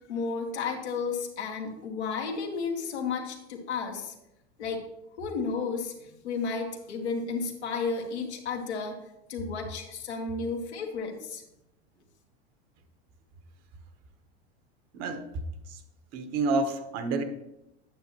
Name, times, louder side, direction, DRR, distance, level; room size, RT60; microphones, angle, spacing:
voice 1, 0.1-4.1 4.6-4.8 5.2-9.0 9.3-11.4, left 4 dB, 85° left, 2 dB, 1.5 m, -32 dB
voice 2, 14.9-15.3 15.7-15.8 16.1-17.2, right 3 dB, 50° right, 8 dB, 1.1 m, -29 dB
9.1 x 7.3 x 2.9 m, 0.87 s
hypercardioid pair, 90°, 33 cm